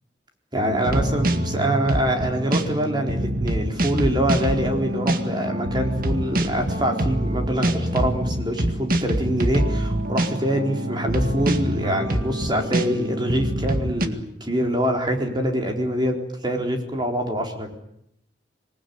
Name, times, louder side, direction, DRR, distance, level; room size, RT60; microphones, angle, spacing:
voice 1, 0.5-17.7, equal, 25° right, 3 dB, 4.2 m, -25 dB
sound 1, 0.6-14.1, right 1 dB, 50° right, 1.9 m, -25 dB
26.0 x 20.5 x 9.6 m, 0.76 s
head